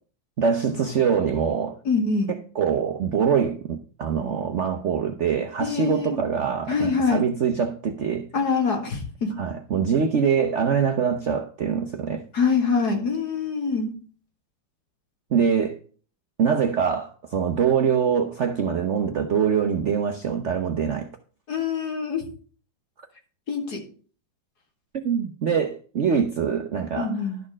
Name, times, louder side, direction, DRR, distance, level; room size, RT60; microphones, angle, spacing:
voice 1, 0.4-1.8 2.3-8.3 9.4-12.2 15.3-15.8 16.4-21.1 25.0-27.1, right 7 dB, 55° right, 0.8 m, -24 dB
voice 2, 1.9-2.3 5.6-6.2 6.7-7.3 8.3-9.3 12.3-13.9 21.5-22.2 23.5-23.8 26.9-27.4, left 4 dB, 60° left, 2.6 m, -24 dB
12.0 x 4.4 x 7.2 m
omnidirectional pair, 2.0 m